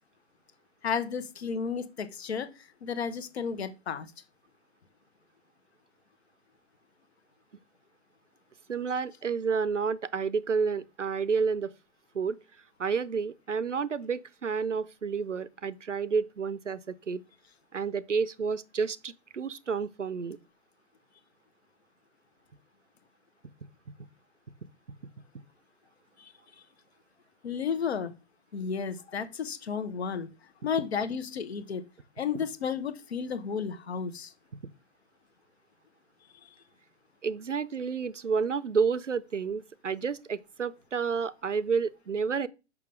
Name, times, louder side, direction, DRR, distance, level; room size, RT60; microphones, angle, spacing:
voice 1, 0.8-4.1 26.2-26.3 27.4-28.1 28.5-30.3 30.6-31.8 32.2-34.3, left 6 dB, 60° left, 1.0 m, -32 dB
voice 2, 8.7-11.7 12.1-12.4 12.8-17.2 17.7-20.4 37.2-42.5, right 5 dB, 90° right, 0.6 m, -30 dB
6.1 x 5.7 x 3.3 m
figure-of-eight pair, 115°, 35 cm